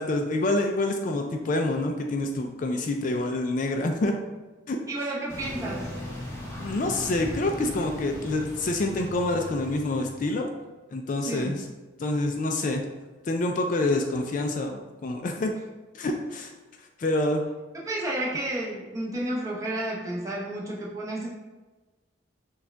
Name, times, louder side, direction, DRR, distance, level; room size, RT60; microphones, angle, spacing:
voice 1, 0.0-4.1 4.7-4.8 6.6-10.5 10.9-11.7 12.0-12.9 13.2-15.5 15.9-16.5 17.0-17.4, left 2 dB, 40° left, 3 dB, 0.3 m, -27 dB
voice 2, 4.9-5.9 11.3-11.5 17.7-21.3, right 1 dB, 15° right, -4 dB, 0.8 m, -31 dB
sound 1, 5.3-10.3, left 1 dB, 15° left, 0.7 m, -38 dB
6.2 x 2.3 x 3.4 m, 1.2 s
head